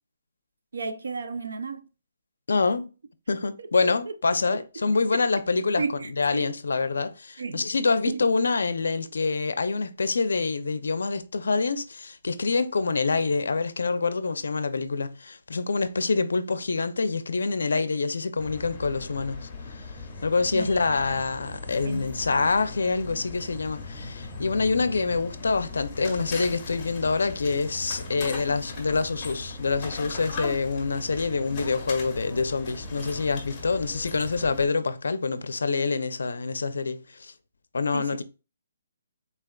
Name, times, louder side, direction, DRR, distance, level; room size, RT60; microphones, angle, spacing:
voice 1, 0.7-1.9 3.6-4.2 4.5-4.9 5.1-5.2 5.8-6.6 7.4-7.7 8.1-8.2 20.5-20.7 21.0-21.1 21.7-22.5 37.9-38.2, right 4 dB, 85° right, 0.6 m, -34 dB
voice 2, 2.5-2.9 3.3-19.9 20.2-37.3 37.7-38.2, left 4 dB, 85° left, 0.5 m, -26 dB
sound 1, 18.4-34.7, left 3 dB, 15° left, 1.0 m, -38 dB
4.2 x 3.3 x 2.3 m
hypercardioid pair, 165°, 0 cm